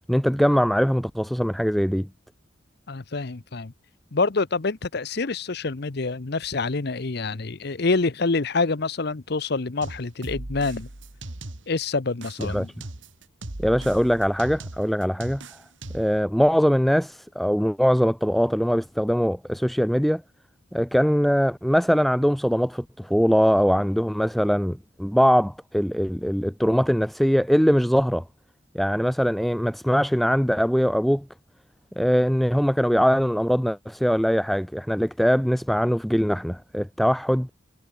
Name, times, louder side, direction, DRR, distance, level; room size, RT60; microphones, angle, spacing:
voice 1, 0.1-2.1 12.4-12.7 13.6-15.6 15.9-20.2 20.7-28.2 28.7-31.3 32.0-37.5, equal, ahead, 0.3 m, -22 dB
voice 2, 2.9-3.7 4.1-10.9 11.7-12.7, left 3 dB, 55° left, 0.8 m, -26 dB
sound 1, 9.8-11.8 12.2-16.2, right 2 dB, 70° right, 2.2 m, -38 dB
head